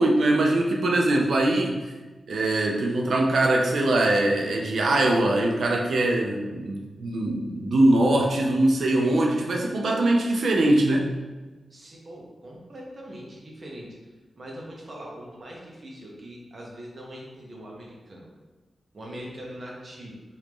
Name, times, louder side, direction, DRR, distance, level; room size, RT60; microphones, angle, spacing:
voice 1, 0.0-1.9 2.3-11.2, right 1 dB, 75° right, 1 dB, 0.5 m, -22 dB
voice 2, 11.7-14.0 14.3-18.3 18.9-20.2, equal, 40° right, -2 dB, 0.8 m, -41 dB
3.0 x 2.6 x 3.5 m, 1.2 s
wide cardioid pair, 130°, 0 cm